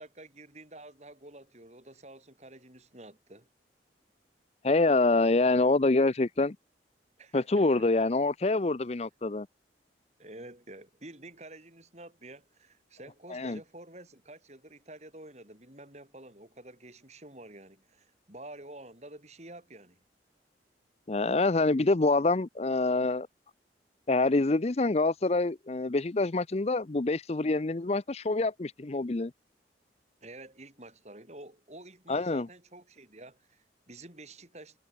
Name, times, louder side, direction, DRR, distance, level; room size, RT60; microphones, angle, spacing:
voice 1, 0.0-3.5 7.2-7.9 10.2-20.0 30.2-34.8, right 2 dB, 40° right, 5.9 m, -49 dB
voice 2, 4.6-6.6 7.3-9.5 13.3-13.6 21.1-23.3 24.1-29.3 32.1-32.5, left 2 dB, 35° left, 0.6 m, -26 dB
head